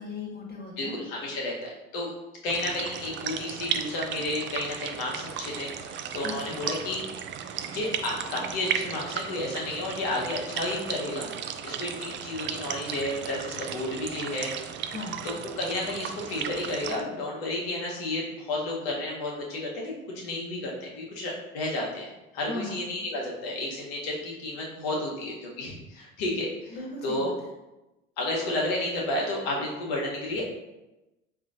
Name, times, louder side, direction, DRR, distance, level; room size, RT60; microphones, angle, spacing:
voice 1, 0.0-1.0 6.2-6.6 14.9-15.2 22.5-22.8 26.7-27.3, left 3 dB, 30° left, -1 dB, 1.3 m, -37 dB
voice 2, 0.8-2.1 2.4-7.0 7.7-14.8 15.2-22.1 22.3-26.8 27.0-27.3 28.2-30.4, left 1 dB, 70° left, -2 dB, 1.1 m, -32 dB
sound 1, 2.4-17.0, right 8 dB, 40° right, 0.4 m, -35 dB
4.8 x 2.7 x 2.5 m, 1.0 s
hypercardioid pair, 60°, 31 cm